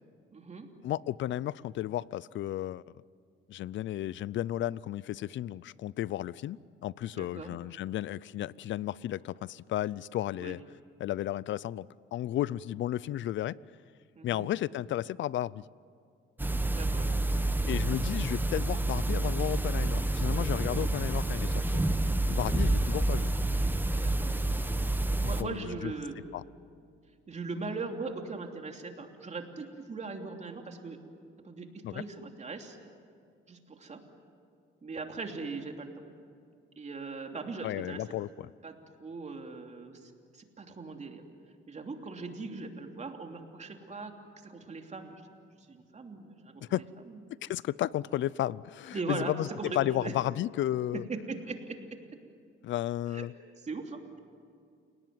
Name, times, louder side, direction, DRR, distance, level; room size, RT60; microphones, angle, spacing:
voice 1, 0.3-0.7 7.2-7.6 10.4-10.5 14.1-14.5 16.7-17.1 20.6-20.9 24.0-24.3 25.2-26.1 27.3-31.0 31.4-32.8 33.5-34.0 34.8-35.9 36.8-38.0 38.6-41.2 41.7-44.1 44.4-45.1 45.7-46.6 47.1-47.2 48.9-50.1 50.9-51.8 53.1-53.3 53.6-54.2, right 3 dB, 35° right, 4 dB, 3.1 m, -40 dB
voice 2, 0.8-2.8 3.5-10.6 11.0-13.6 14.2-15.6 17.7-21.8 22.3-23.3 25.2-25.9 26.3-26.4 31.8-32.0 37.6-38.5 46.6-46.9 47.4-49.5 49.7-51.0 52.6-53.3, left 13 dB, 70° left, 22 dB, 0.6 m, -33 dB
sound 1, 16.4-25.4, right 2 dB, 10° right, 1.2 m, -28 dB
30.0 x 18.5 x 9.5 m, 2.3 s
cardioid pair, 90°, 20 cm